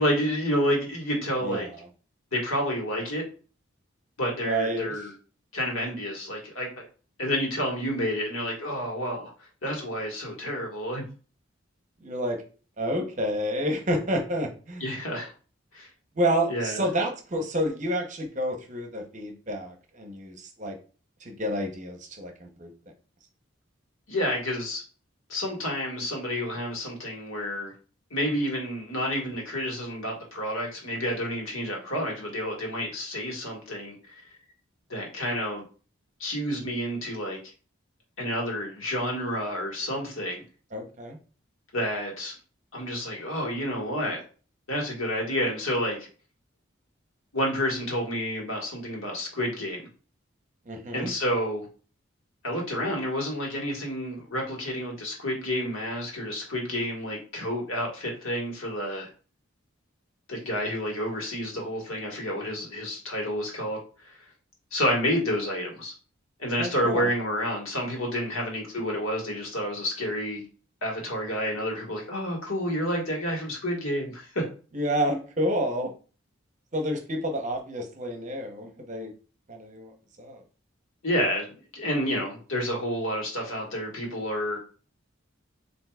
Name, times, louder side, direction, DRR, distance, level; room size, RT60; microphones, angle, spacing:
voice 1, 0.0-1.7 2.3-3.2 4.2-5.1 5.5-6.9 7.2-9.3 9.6-11.0 14.8-15.3 15.7-15.9 16.5-16.8 24.1-24.8 25.3-27.7 28.1-34.2 34.9-35.6 36.2-37.4 38.2-40.4 41.7-42.3 42.7-44.2 44.7-46.0 47.3-49.9 50.9-51.7 52.4-59.1 60.3-64.2 64.7-65.9 66.4-70.4 70.8-74.4 81.0-84.6, equal, 90° left, 0 dB, 1.5 m, -29 dB
voice 2, 4.4-5.0 12.0-12.4 12.8-14.8 16.2-20.8 21.2-22.7 40.7-41.2 50.7-51.1 66.6-67.1 74.7-75.9 76.7-79.1 79.5-80.4, equal, 35° right, 3 dB, 0.8 m, -29 dB
7.6 x 2.7 x 2.3 m, 0.37 s
head